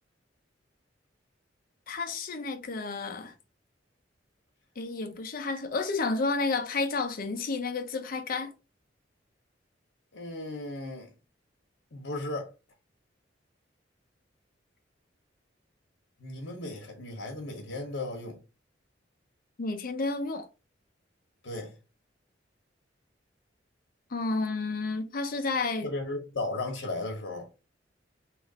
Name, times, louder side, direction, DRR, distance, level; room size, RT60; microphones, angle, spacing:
voice 1, 1.9-3.3 4.8-8.5 19.6-20.5 24.1-25.9, left 3 dB, 50° left, 0.6 m, -31 dB
voice 2, 10.1-11.1 11.9-12.5 16.2-18.4 21.4-21.8 25.8-27.5, left 2 dB, 85° left, 0.9 m, -35 dB
3.0 x 2.5 x 3.9 m
head